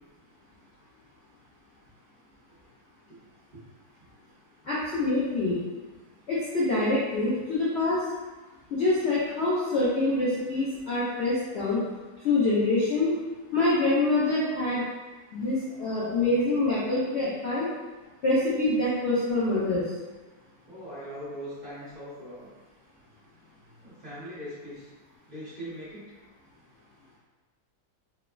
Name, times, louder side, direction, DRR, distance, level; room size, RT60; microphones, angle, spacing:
voice 1, 4.6-5.6 6.3-8.0 8.7-11.8 12.2-13.1 13.5-14.9 15.3-17.7 18.2-19.8, left 2 dB, 90° left, -9 dB, 0.5 m, -25 dB
voice 2, 20.7-22.5 23.8-24.9 25.3-26.0, equal, 35° right, -12 dB, 0.7 m, -40 dB
3.1 x 2.0 x 2.3 m, 1.2 s
omnidirectional pair, 1.8 m